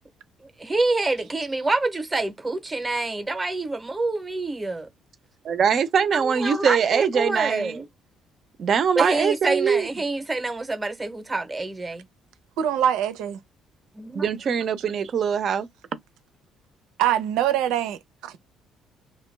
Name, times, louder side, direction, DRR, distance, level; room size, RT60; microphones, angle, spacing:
voice 1, 0.6-4.9 6.1-7.8 9.0-12.0 13.9-14.3, right 2 dB, 15° right, 0.8 m, -27 dB
voice 2, 5.4-7.8 8.6-9.9 14.1-15.7, right 7 dB, 45° right, 0.6 m, -22 dB
voice 3, 12.6-13.4 17.0-18.4, right 10 dB, 90° right, 0.6 m, -24 dB
2.2 x 2.2 x 3.2 m
cardioid pair, 120°, 0 cm